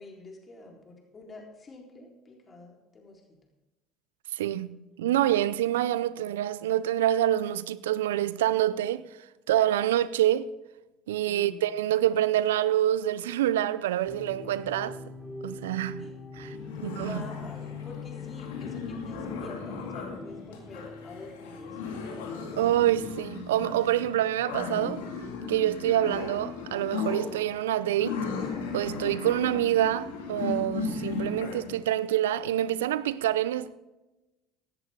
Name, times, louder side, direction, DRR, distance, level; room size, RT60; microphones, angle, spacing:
voice 1, 0.0-3.4 11.3-11.7 16.0-16.1 16.4-22.4, left 2 dB, 35° left, 4.0 m, -48 dB
voice 2, 4.3-9.1 9.5-10.5 11.1-15.0 15.4-16.6 16.8-17.2 22.6-25.0 25.5-28.2 28.7-33.8, right 12 dB, 90° right, 0.5 m, -26 dB
sound 1, 14.0-23.2, left 4 dB, 5° left, 3.9 m, -43 dB
sound 2, 16.5-31.7, left 5 dB, 85° left, 2.1 m, -36 dB
16.5 x 11.0 x 3.8 m
hypercardioid pair, 75°, 0 cm